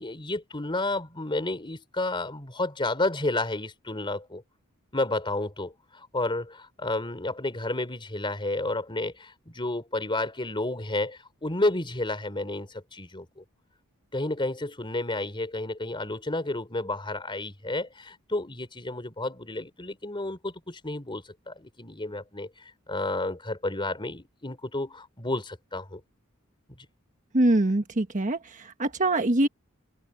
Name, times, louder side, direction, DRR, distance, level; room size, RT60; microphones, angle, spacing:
voice 1, 0.0-4.4 4.9-13.4 14.1-22.5 22.9-26.0, left 2 dB, 25° left, 3.6 m, -31 dB
voice 2, 27.3-29.5, right 1 dB, 35° right, 1.3 m, -24 dB
open air
head